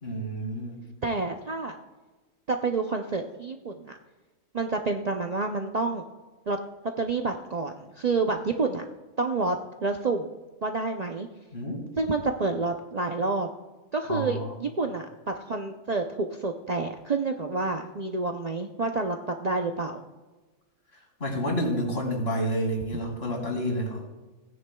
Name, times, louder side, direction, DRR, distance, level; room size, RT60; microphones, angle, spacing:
voice 1, 0.0-0.8 11.5-11.9 14.1-14.6 21.2-24.1, equal, 50° left, 0 dB, 2.7 m, -29 dB
voice 2, 1.0-1.8 2.5-4.0 4.5-6.0 6.5-6.6 7.0-8.8 9.2-10.3 10.6-11.3 12.0-13.5 13.9-20.0, right 3 dB, 50° right, 4 dB, 0.5 m, -28 dB
17.0 x 9.8 x 2.2 m, 1.2 s
omnidirectional pair, 1.4 m